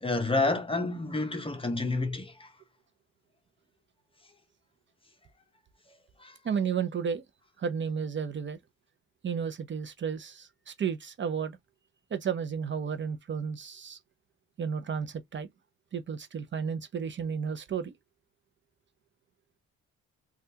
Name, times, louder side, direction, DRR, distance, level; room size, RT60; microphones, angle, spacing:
voice 1, 0.0-2.5 6.2-6.3, left 3 dB, 20° left, 0.7 m, -29 dB
voice 2, 6.4-7.2 7.6-8.6 9.2-11.6 12.1-14.0 14.6-15.5 15.9-17.9, right 6 dB, 40° right, 0.6 m, -32 dB
3.3 x 2.4 x 2.7 m
cardioid pair, 90°, 30 cm